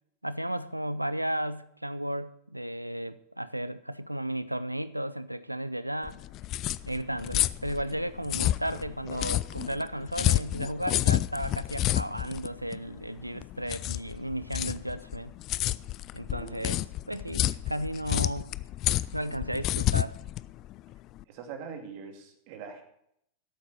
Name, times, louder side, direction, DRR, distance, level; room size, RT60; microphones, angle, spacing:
voice 1, 0.2-6.2 6.9-15.3 16.1-18.5 19.1-20.2, right 1 dB, 90° right, 0.5 m, -34 dB
sound 1, 6.0-21.2, left 15 dB, 35° left, 0.4 m, -30 dB
voice 2, 16.3-16.7 21.3-22.8, right 6 dB, 45° right, 2.3 m, -42 dB
13.5 x 8.4 x 6.1 m
figure-of-eight pair, 90°, 0 cm